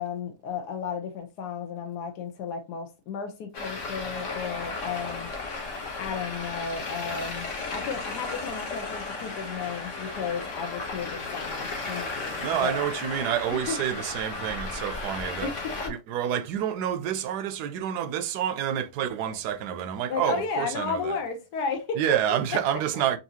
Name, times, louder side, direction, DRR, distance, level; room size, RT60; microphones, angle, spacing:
voice 1, 0.0-5.3 6.0-12.8 13.5-13.7 15.4-15.9 20.1-22.0, left 6 dB, 80° left, 1.3 m, -33 dB
Traffic noise roadway noise, 3.5-15.9, left 3 dB, 55° left, 1.3 m, -35 dB
voice 2, 12.4-15.5 15.9-21.2 22.0-23.2, right 10 dB, 80° right, 1.1 m, -28 dB
5.5 x 2.7 x 2.8 m
omnidirectional pair, 1.7 m